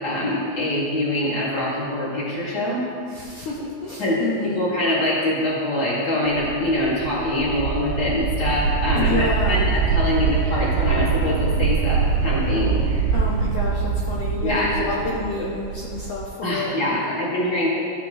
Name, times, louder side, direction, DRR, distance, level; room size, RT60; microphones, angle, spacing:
voice 1, 0.0-2.8 4.0-4.2 4.5-13.1 14.4-14.9 15.4-15.5 16.4-17.7, left 1 dB, 25° left, -8 dB, 2.0 m, -24 dB
voice 2, 3.1-4.6 8.9-9.7 13.1-16.7, left 3 dB, 75° left, -5 dB, 1.9 m, -29 dB
sound 1, 6.3-16.3, right 5 dB, 85° right, 2.5 m, -24 dB
13.0 x 6.1 x 3.2 m, 2.3 s
omnidirectional pair, 4.3 m